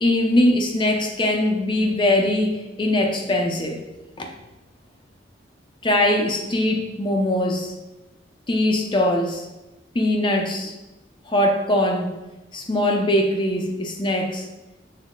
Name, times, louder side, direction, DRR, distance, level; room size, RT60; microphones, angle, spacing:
voice 1, 0.0-3.8 4.2-4.3 5.8-7.7 8.5-9.5 9.9-10.7 11.3-12.2 12.5-14.4, left 1 dB, 25° left, 2 dB, 0.6 m, -21 dB
6.3 x 4.1 x 3.8 m, 1.0 s
head